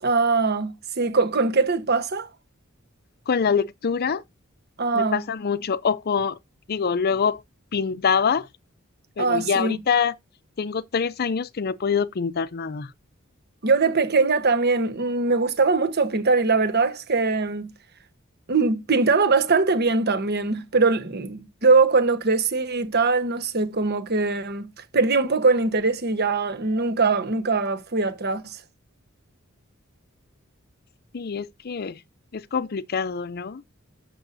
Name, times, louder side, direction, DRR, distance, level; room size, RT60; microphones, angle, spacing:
voice 1, 0.0-2.3 4.8-5.2 9.2-9.8 13.6-17.7 18.5-28.6, right 4 dB, 50° right, 1.2 m, -22 dB
voice 2, 3.3-4.2 4.9-6.4 6.7-7.4 7.7-8.5 9.2-10.1 10.6-12.9 31.1-32.0 32.3-33.6, left 6 dB, 50° left, 0.5 m, -25 dB
11.5 x 6.8 x 2.6 m
head